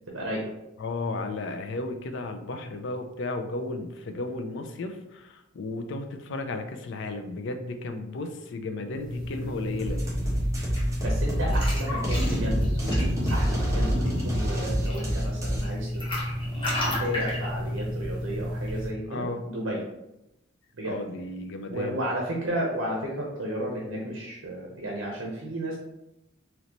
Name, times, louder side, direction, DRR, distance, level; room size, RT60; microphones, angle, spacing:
voice 1, 0.1-0.5 11.0-15.9 16.6-16.7 17.0-19.8 20.7-21.0 21.7-25.8, right 1 dB, 70° right, -2 dB, 0.8 m, -33 dB
voice 2, 0.8-10.0 13.7-14.0 19.1-19.4 20.8-22.0, left 2 dB, 65° left, 6 dB, 0.5 m, -34 dB
sound 1, 8.9-18.9, left 1 dB, 25° left, 1.1 m, -32 dB
sound 2, 9.8-15.6, equal, 15° right, 1.1 m, -27 dB
3.9 x 3.1 x 3.0 m, 0.90 s
head